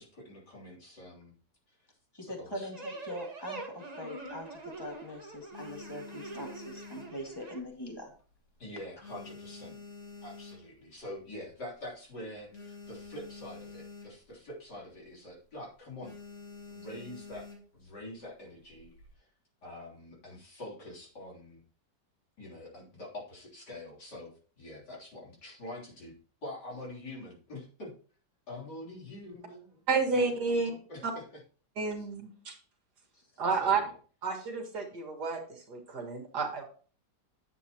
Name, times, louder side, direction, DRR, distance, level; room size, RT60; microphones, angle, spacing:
voice 1, 0.0-1.3 1.7-1.8 2.4-2.7 8.6-9.8 10.2-16.2 16.7-17.5 17.7-19.3 19.6-21.6 22.4-26.1 26.4-27.9 28.5-29.8 30.1-30.2 30.5-31.2 32.0-32.1 33.1-33.3 33.6-33.9, left 1 dB, 70° left, -4 dB, 4.1 m, -45 dB
voice 2, 2.1-8.1, equal, 15° left, 1 dB, 2.0 m, -42 dB
sound 1, 2.7-7.6, right 3 dB, 25° right, 1.3 m, -45 dB
sound 2, 4.2-4.9 5.3-7.8 8.1-8.5 8.8-11.0 11.5-11.6 11.8-11.9 12.2-14.4 14.7-15.0 15.3-15.6 16.0-17.8 18.6-19.1, left 4 dB, 45° left, 2.7 m, -48 dB
voice 3, 29.9-30.7 31.0-31.1 31.8-32.6 33.4-33.8 34.2-36.6, right 4 dB, 65° right, 3 dB, 2.3 m, -30 dB
10.0 x 7.6 x 2.9 m, 0.40 s
omnidirectional pair, 1.9 m